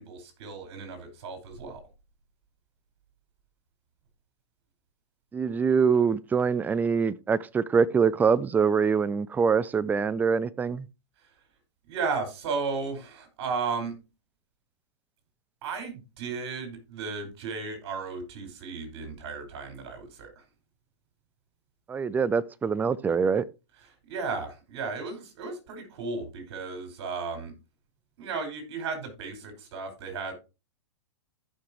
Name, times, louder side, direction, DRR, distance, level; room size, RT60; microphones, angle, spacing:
voice 1, 0.0-1.8 11.9-13.9 15.6-20.4 24.1-27.5 28.2-30.3, right 4 dB, 55° right, 5.3 m, -34 dB
voice 2, 5.3-10.9 21.9-23.4, right 6 dB, 10° right, 0.4 m, -24 dB
14.5 x 6.1 x 3.1 m
hypercardioid pair, 125°, 16 cm